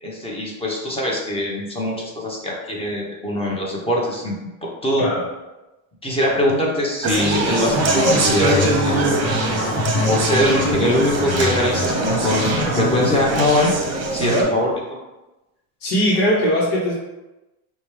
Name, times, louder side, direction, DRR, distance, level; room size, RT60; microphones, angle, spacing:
voice 1, 0.0-5.1 6.0-9.0 10.0-13.7 14.1-14.7, left 1 dB, 15° left, -3 dB, 0.9 m, -22 dB
Conversation, 7.0-14.4, right 2 dB, 35° right, 0.8 m, -22 dB
sound 1, 7.6-13.3, left 2 dB, 65° left, 0.9 m, -25 dB
voice 2, 14.2-14.5 15.8-17.0, equal, 90° left, -6 dB, 1.0 m, -19 dB
4.9 x 2.3 x 3.2 m, 1.0 s
cardioid pair, 120°, 44 cm